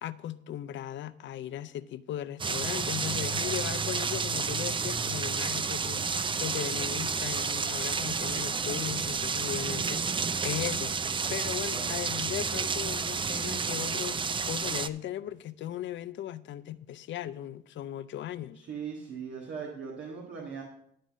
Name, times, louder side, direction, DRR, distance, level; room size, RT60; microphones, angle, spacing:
voice 1, 0.0-10.9 11.3-18.7, left 12 dB, 70° left, 0.5 m, -37 dB
sound 1, 2.4-14.9, right 5 dB, 25° right, 0.4 m, -30 dB
voice 2, 11.7-12.0 18.5-20.6, right 6 dB, 75° right, 1.6 m, -39 dB
11.5 x 3.9 x 7.2 m
cardioid pair, 90°, 20 cm